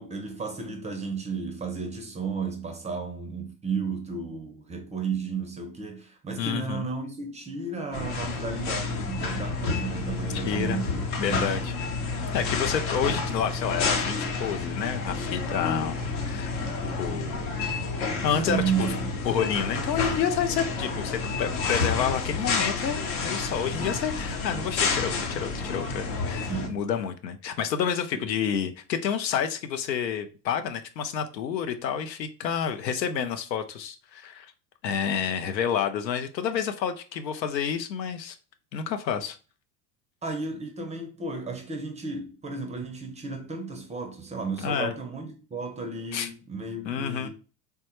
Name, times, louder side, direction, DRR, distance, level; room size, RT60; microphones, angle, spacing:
voice 1, 0.0-11.6 18.3-19.1 26.5-26.8 28.1-28.2 40.2-47.3, right 5 dB, 15° right, 0.5 m, -33 dB
voice 2, 6.4-6.9 10.3-10.8 11.2-11.7 12.3-15.9 16.2-16.6 17.0-17.5 18.2-18.9 19.2-34.5 34.8-38.3 38.7-39.3 44.6-44.9 46.1-46.3 46.9-47.3, left 8 dB, 85° left, 0.6 m, -29 dB
sound 1, 7.9-26.7, left 4 dB, 65° left, 0.9 m, -30 dB
3.3 x 2.2 x 2.9 m
hypercardioid pair, 80°, 49 cm